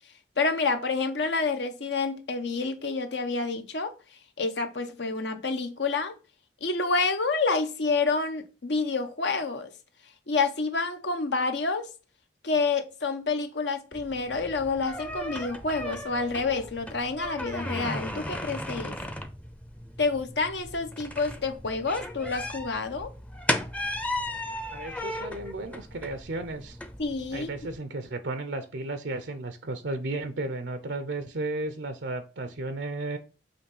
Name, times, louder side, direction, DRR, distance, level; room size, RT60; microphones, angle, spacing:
voice 1, 0.4-3.9 4.4-6.1 6.6-9.7 10.3-11.9 12.4-19.0 20.0-23.1 27.0-27.5, left 4 dB, 80° left, 1.0 m, -28 dB
sound 1, 13.9-27.8, left 1 dB, 10° left, 0.6 m, -36 dB
voice 2, 24.7-26.8 27.3-33.2, right 2 dB, 85° right, 0.7 m, -34 dB
6.9 x 3.1 x 5.4 m
head